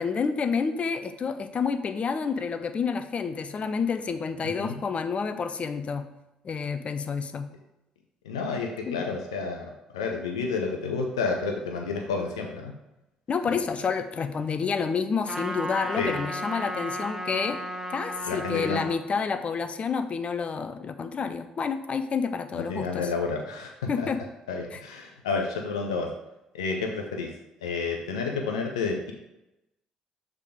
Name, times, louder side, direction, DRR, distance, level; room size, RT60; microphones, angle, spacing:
voice 1, 0.0-6.0 6.4-7.5 8.9-9.0 13.3-17.6 17.9-23.1 23.9-24.2 24.7-24.8, left 5 dB, 45° left, 10 dB, 0.6 m, -29 dB
voice 2, 8.2-12.7 16.0-16.2 18.2-18.8 22.5-24.1 24.5-26.1 26.5-27.3 27.6-29.1, left 4 dB, 90° left, 2 dB, 0.7 m, -30 dB
Trumpet, 15.3-19.0, equal, 15° right, 1.3 m, -34 dB
6.6 x 3.6 x 5.0 m, 0.93 s
hypercardioid pair, 55°, 3 cm